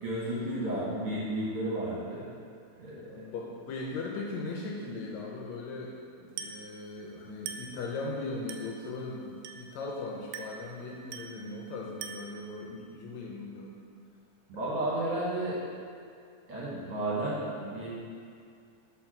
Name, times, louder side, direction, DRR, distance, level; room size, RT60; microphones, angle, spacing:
voice 1, 0.0-2.3 2.8-3.1 14.5-15.6 16.5-17.9, right 1 dB, 60° right, -7 dB, 1.7 m, -32 dB
voice 2, 3.1-13.8 14.5-14.7, left 3 dB, 80° left, -2 dB, 1.7 m, -39 dB
Glass, 6.4-6.7 7.5-7.8 8.5-8.8 9.4-9.8 10.3-10.7 11.1-11.5 12.0-12.4, right 7 dB, 80° right, 1.9 m, -42 dB
5.1 x 4.2 x 5.8 m, 2.3 s
omnidirectional pair, 3.6 m